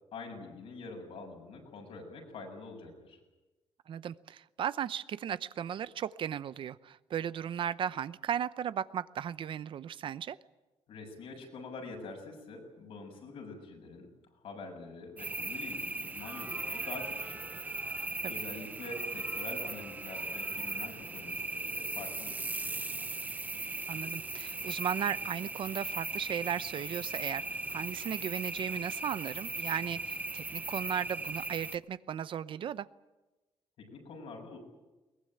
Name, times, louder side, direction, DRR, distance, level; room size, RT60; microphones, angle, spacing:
voice 1, 0.1-3.2 10.9-14.1 14.3-23.2 33.8-34.6, left 3 dB, 75° left, 2 dB, 7.1 m, -46 dB
voice 2, 3.9-10.4 18.2-18.3 23.9-32.9, right 9 dB, 60° right, 16 dB, 0.7 m, -36 dB
sound 1, 15.2-31.8, right 3 dB, 15° right, 0.8 m, -38 dB
22.0 x 20.5 x 9.1 m, 1.1 s
cardioid pair, 135°, 10 cm